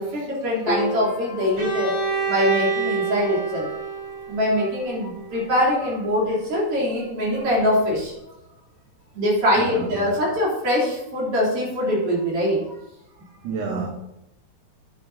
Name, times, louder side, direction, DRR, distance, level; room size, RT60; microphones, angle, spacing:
voice 1, 0.0-1.9 2.3-3.8 4.3-8.1 9.1-12.6, equal, 35° right, 4.3 m, -23 dB
Piano, 0.7-7.3, left 1 dB, 65° left, 3.1 m, -36 dB
Bowed string instrument, 1.6-5.4, right 4 dB, 20° right, 4.4 m, -28 dB
voice 2, 9.6-10.1 13.4-13.9, right 5 dB, 65° right, 2.3 m, -30 dB
9.4 x 9.0 x 4.2 m
omnidirectional pair, 4.5 m